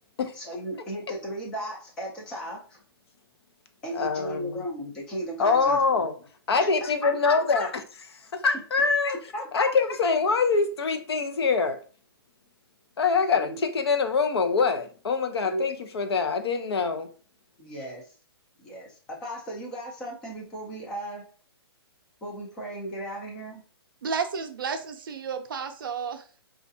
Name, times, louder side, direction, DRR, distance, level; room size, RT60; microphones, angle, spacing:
voice 1, 0.3-2.8 3.8-6.0 6.5-7.7 9.1-9.5 13.3-13.6 15.4-15.7 16.9-17.0 17.6-18.0 18.6-21.3 22.2-23.6, right 1 dB, 5° left, 0.4 m, -36 dB
voice 2, 3.9-4.6 5.4-6.1 6.5-7.7 8.3-9.2 9.5-11.8 13.0-17.1, left 4 dB, 70° left, 0.7 m, -24 dB
voice 3, 24.0-26.4, right 5 dB, 55° right, 0.5 m, -32 dB
4.4 x 2.4 x 2.6 m
hypercardioid pair, 175°, 14 cm